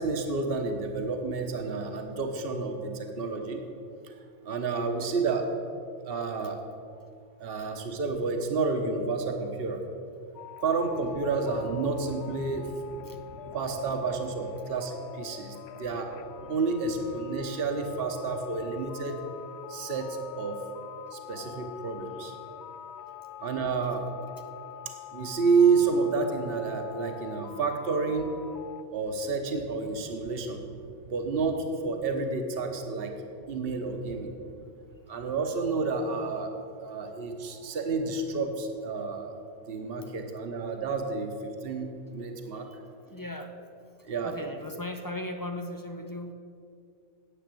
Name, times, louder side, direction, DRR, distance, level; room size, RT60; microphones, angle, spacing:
voice 1, 0.0-3.6 4.0-4.1 4.4-5.5 6.0-6.6 7.4-9.9 10.6-12.7 13.5-16.1 16.4-19.2 19.7-20.6 21.1-22.4 23.4-24.0 25.1-28.3 28.9-30.6 31.1-33.1 33.5-34.3 35.1-36.5 36.8-39.4 39.7-42.7 44.0-44.5, right 4 dB, 50° right, 4 dB, 1.3 m, -30 dB
sound 1, 10.3-28.8, left 10 dB, 65° left, 0.8 m, -44 dB
voice 2, 43.1-43.6 44.2-46.3, left 1 dB, 25° left, 6 dB, 0.4 m, -38 dB
10.0 x 7.8 x 7.7 m, 2.4 s
omnidirectional pair, 1.3 m